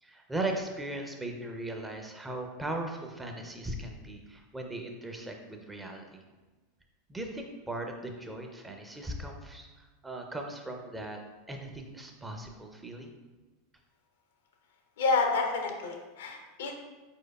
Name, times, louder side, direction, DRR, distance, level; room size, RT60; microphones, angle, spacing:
voice 1, 0.0-6.2 7.1-11.2 11.5-13.1, right 1 dB, 10° right, 3 dB, 0.5 m, -38 dB
voice 2, 15.0-16.8, left 4 dB, 65° left, 3 dB, 0.6 m, -29 dB
4.5 x 4.5 x 2.3 m, 1.2 s
figure-of-eight pair, 85°, 0 cm